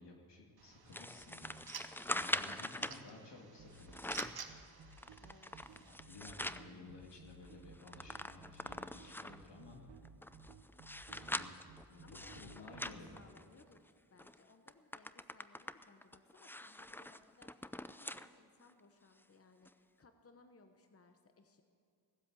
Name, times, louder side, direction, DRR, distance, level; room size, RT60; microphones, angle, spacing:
voice 1, 0.0-4.2 5.8-9.8 11.1-11.5 11.9-13.3, left 3 dB, 75° left, 0 dB, 2.5 m, -55 dB
sound 1, 0.6-6.0, right 6 dB, 60° right, 1.1 m, -53 dB
sound 2, 0.9-3.0 3.7-4.4 4.9-6.6 7.1-7.2 7.4-9.5 10.0-13.8 14.2-14.4 14.7-18.3 18.7-18.8 19.7-19.8, left 1 dB, 5° left, 0.4 m, -43 dB
voice 2, 2.5-3.5 5.2-5.8 12.0-21.6, left 3 dB, 35° left, 6 dB, 1.0 m, -64 dB
sound 3, 3.6-13.0, right 4 dB, 85° right, 0.9 m, -57 dB
16.5 x 7.7 x 8.5 m, 2.4 s
cardioid pair, 50°, 42 cm